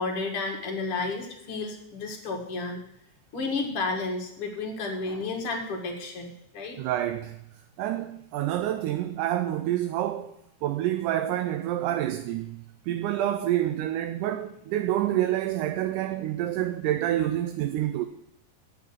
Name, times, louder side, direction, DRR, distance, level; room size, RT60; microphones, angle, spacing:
voice 1, 0.0-2.8 3.3-6.8, left 3 dB, 45° left, 2.3 m, -32 dB
voice 2, 6.8-7.4 7.8-10.3 10.6-12.6 12.9-18.1, right 13 dB, 80° right, 2.0 m, -28 dB
8.8 x 6.9 x 8.2 m
omnidirectional pair, 3.9 m